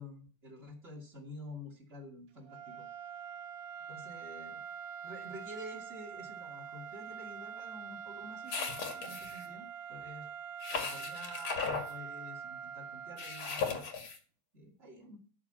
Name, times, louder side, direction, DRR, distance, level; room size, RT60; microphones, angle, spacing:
voice 1, 0.0-2.8 3.9-4.6 5.0-10.3 10.7-13.8 14.5-15.2, left 1 dB, 25° right, 0 dB, 1.5 m, -49 dB
sound 1, 2.4-14.0, right 7 dB, 80° right, 2.9 m, -45 dB
sound 2, 8.5-9.4 10.6-11.9 13.2-14.2, left 5 dB, 70° left, 1.2 m, -37 dB
13.0 x 5.7 x 7.7 m, 0.39 s
omnidirectional pair, 5.3 m